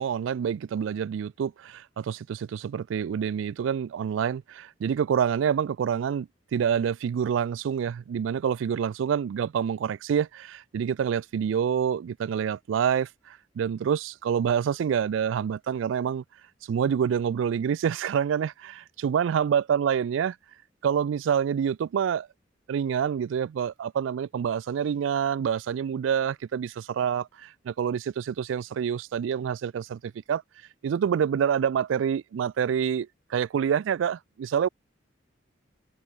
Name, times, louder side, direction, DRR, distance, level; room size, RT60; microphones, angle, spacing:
voice 1, 0.0-16.2 16.7-20.4 20.8-22.3 22.7-30.4 30.8-34.7, right 8 dB, 80° right, 0.3 m, -27 dB
head